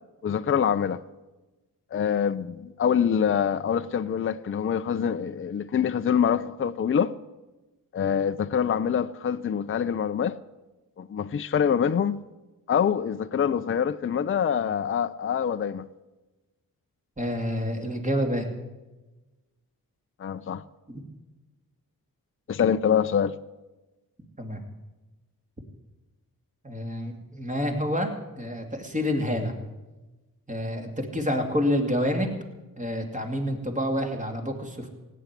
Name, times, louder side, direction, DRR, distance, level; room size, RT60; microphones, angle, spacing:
voice 1, 0.2-1.0 1.9-7.1 7.9-10.4 11.0-12.2 12.7-15.9 20.2-20.6 22.5-23.3, left 8 dB, 35° left, 0.5 m, -25 dB
voice 2, 17.2-18.5 20.9-21.0 24.4-24.6 26.6-28.1 28.4-29.5 30.5-32.3 32.8-34.9, equal, 20° right, 2.7 m, -28 dB
17.0 x 9.3 x 8.3 m
wide cardioid pair, 90°, 35 cm